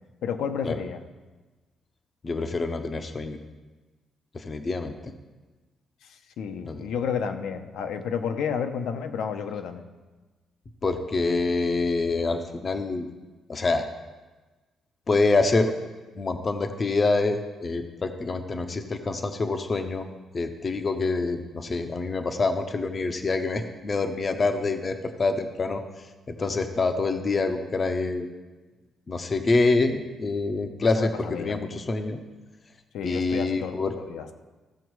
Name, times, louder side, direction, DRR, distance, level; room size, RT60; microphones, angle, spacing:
voice 1, 0.2-1.0 6.0-9.8 30.9-31.7 32.9-33.8 34.0-34.4, left 7 dB, 75° left, 7 dB, 0.8 m, -31 dB
voice 2, 2.2-3.4 4.3-5.1 6.6-6.8 10.8-13.1 13.5-13.9 15.1-15.7 16.2-20.1 20.3-28.3 29.1-32.2 33.0-33.9, left 3 dB, 25° left, 7 dB, 0.6 m, -26 dB
15.0 x 7.1 x 4.7 m, 1.2 s
cardioid pair, 180°, 0 cm